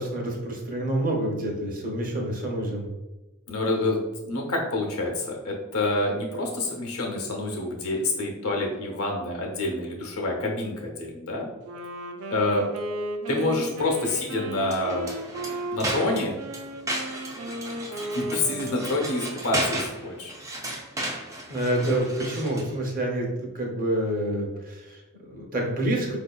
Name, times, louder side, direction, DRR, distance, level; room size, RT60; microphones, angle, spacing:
voice 1, 0.0-2.9 21.5-26.2, right 1 dB, 40° right, -1 dB, 0.8 m, -28 dB
voice 2, 3.5-11.5 12.3-12.7 13.3-15.1 15.7-16.4 17.9-20.3, left 2 dB, 85° left, 1 dB, 0.8 m, -27 dB
Wind instrument woodwind instrument, 11.6-20.0, right 1 dB, 80° right, 0.4 m, -35 dB
sound 1, 14.6-22.8, right 1 dB, 15° right, 0.4 m, -34 dB
4.6 x 2.7 x 2.3 m, 1.1 s
head